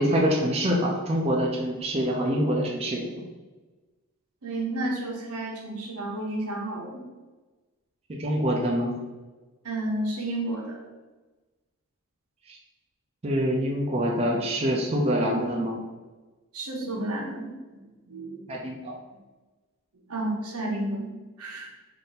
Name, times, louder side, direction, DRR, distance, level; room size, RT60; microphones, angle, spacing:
voice 1, 0.0-3.1 8.1-9.0 12.5-12.6 13.2-15.8 18.5-18.9, equal, 25° right, -1 dB, 0.4 m, -25 dB
voice 2, 4.4-7.0 9.6-10.8 16.5-18.4 20.1-21.1 21.4-21.7, right 1 dB, 85° right, -1 dB, 0.9 m, -31 dB
3.7 x 2.6 x 4.0 m, 1.2 s
head